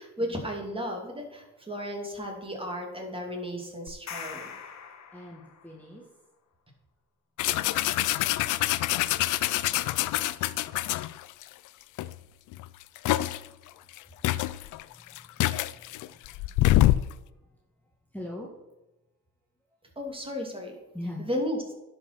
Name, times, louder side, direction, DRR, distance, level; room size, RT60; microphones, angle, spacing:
voice 1, 0.0-4.5 20.0-20.8 21.2-21.7, equal, 20° right, 1 dB, 2.5 m, -34 dB
sound 1, 3.9-5.8, left 7 dB, 60° left, 1.3 m, -42 dB
voice 2, 5.1-6.0 14.9-16.4 18.1-18.5 20.9-21.3, left 1 dB, 5° left, -2 dB, 1.5 m, -42 dB
sound 2, 7.4-11.4 12.0-12.1 12.5-13.5 14.0-14.1 14.2-17.1, left 16 dB, 80° left, 0.5 m, -26 dB
11.0 x 5.3 x 5.9 m, 1.0 s
cardioid pair, 90°, 30 cm